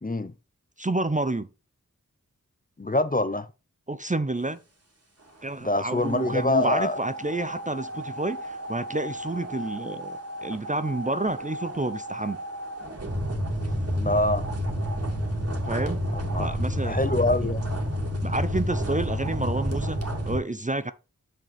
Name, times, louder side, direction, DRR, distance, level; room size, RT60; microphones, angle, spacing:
voice 1, 0.0-0.3 2.8-3.5 5.6-7.0 14.0-14.4 16.2-16.5 16.8-17.6, left 2 dB, 25° left, 0.7 m, -25 dB
voice 2, 0.8-1.5 3.9-4.6 5.4-12.4 15.6-16.0 16.4-17.0 17.4-17.5 18.2-20.0 20.2-20.9, right 2 dB, 25° right, 0.6 m, -29 dB
sound 1, 6.0-20.4, equal, 45° right, 2.3 m, -31 dB
6.6 x 6.4 x 3.4 m
wide cardioid pair, 50°, 33 cm